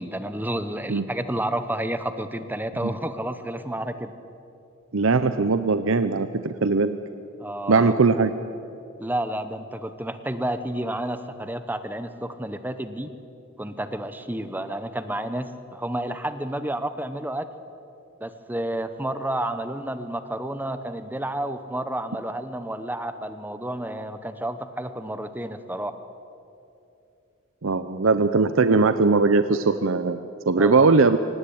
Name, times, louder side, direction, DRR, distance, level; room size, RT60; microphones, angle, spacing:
voice 1, 0.0-4.1 7.4-7.9 9.0-13.1 13.6-17.4 18.2-25.9 30.6-30.9, right 1 dB, 10° right, 10 dB, 0.9 m, -30 dB
voice 2, 4.9-7.0 7.7-8.3 27.6-30.2 30.5-31.2, right 4 dB, 75° right, 11 dB, 0.8 m, -20 dB
24.5 x 19.0 x 8.7 m, 2.7 s
head